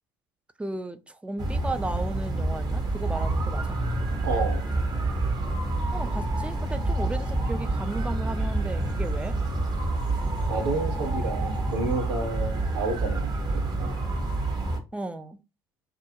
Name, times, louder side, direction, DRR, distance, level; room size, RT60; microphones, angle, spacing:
voice 1, 0.6-3.6 5.9-9.4 14.9-15.4, right 2 dB, 10° right, 0.4 m, -34 dB
sound 1, 1.4-14.8, right 2 dB, 35° right, 0.8 m, -28 dB
voice 2, 4.2-4.6 10.5-14.0, right 3 dB, 80° right, 0.8 m, -30 dB
2.4 x 2.3 x 2.8 m
hypercardioid pair, 65°, 12 cm